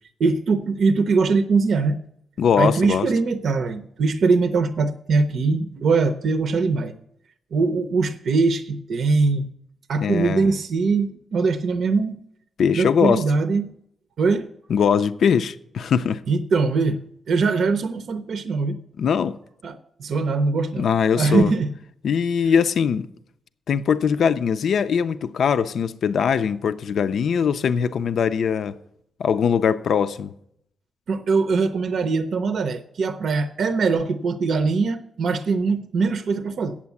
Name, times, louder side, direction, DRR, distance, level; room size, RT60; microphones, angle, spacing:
voice 1, 0.2-2.0 2.6-6.9 7.5-9.5 9.9-12.2 12.7-13.8 14.2-14.5 16.3-17.0 17.3-18.8 19.6-20.9 21.2-21.7 22.4-22.5 31.1-36.8, right 4 dB, 70° right, 0.6 m, -22 dB
voice 2, 2.4-3.1 10.0-10.4 12.6-13.2 14.7-16.2 19.0-19.4 20.8-21.5 22.0-23.1 23.7-28.8 29.2-30.3, left 7 dB, 70° left, 0.4 m, -21 dB
8.6 x 7.2 x 7.0 m
cardioid pair, 75°, 0 cm